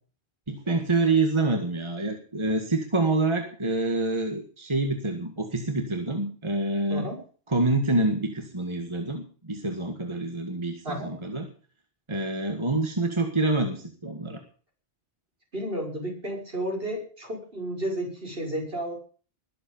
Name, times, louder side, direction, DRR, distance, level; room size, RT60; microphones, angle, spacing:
voice 1, 0.5-7.1 7.5-11.5 12.1-14.4, right 2 dB, 25° right, 5 dB, 1.9 m, -27 dB
voice 2, 15.5-18.9, right 1 dB, 60° right, 0 dB, 6.7 m, -32 dB
21.0 x 7.9 x 7.2 m, 0.42 s
omnidirectional pair, 1.1 m